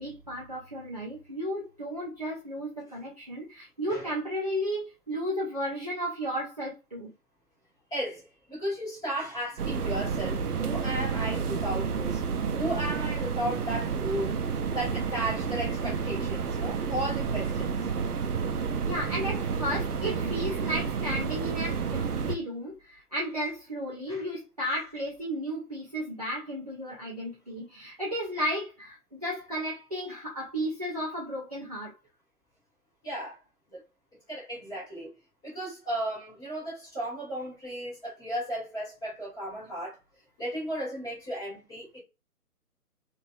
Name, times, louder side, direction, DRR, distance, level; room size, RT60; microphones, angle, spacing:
voice 1, 0.0-7.1 18.8-31.9, equal, 25° right, 0.5 m, -34 dB
voice 2, 7.9-12.2 12.5-14.4 14.7-17.7 24.1-24.2 33.0-33.4 33.7-33.8 34.3-35.1 35.4-40.0 40.4-42.0, right 1 dB, 10° left, 1.2 m, -35 dB
sound 1, 9.6-22.4, right 6 dB, 70° right, 0.6 m, -30 dB
3.0 x 2.6 x 2.3 m
figure-of-eight pair, 145°, 46 cm